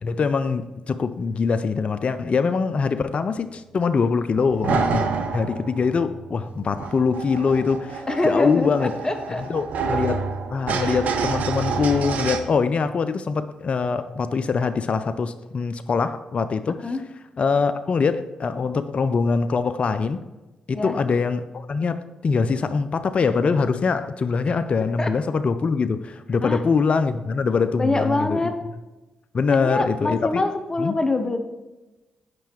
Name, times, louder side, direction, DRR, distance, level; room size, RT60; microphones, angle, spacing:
voice 1, 0.0-5.0 5.3-8.9 9.5-16.8 17.4-20.2 20.7-28.4 29.3-30.4 30.8-30.9, left 5 dB, 50° left, 11 dB, 0.4 m, -23 dB
sound 1, 4.4-12.4, right 5 dB, 65° right, 0.5 m, -28 dB
voice 2, 8.1-9.4 16.8-17.0 20.7-20.9 24.5-24.6 25.0-25.1 26.4-26.6 27.8-28.5 29.5-31.4, left 2 dB, 25° left, 7 dB, 0.7 m, -24 dB
7.6 x 5.5 x 3.0 m, 1.1 s
hypercardioid pair, 45°, 3 cm